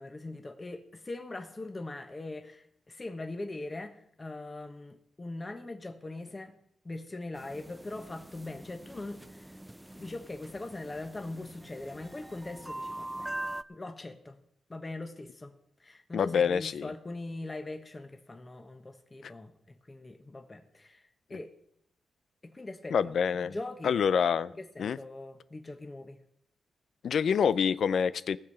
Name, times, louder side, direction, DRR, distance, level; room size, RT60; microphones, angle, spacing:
voice 1, 0.0-6.5 6.8-9.6 9.9-13.3 13.7-14.4 14.7-21.5 22.4-22.9 23.3-24.0 24.4-26.2, left 2 dB, 25° left, 1.1 m, -41 dB
sound 1, 7.3-13.6, right 1 dB, 5° right, 0.4 m, -43 dB
voice 2, 16.1-16.9 19.2-19.3 22.9-23.5 23.8-24.5 24.8-25.0 27.0-28.4, left 7 dB, 70° left, 0.4 m, -26 dB
19.0 x 6.9 x 5.5 m
wide cardioid pair, 115°, 0 cm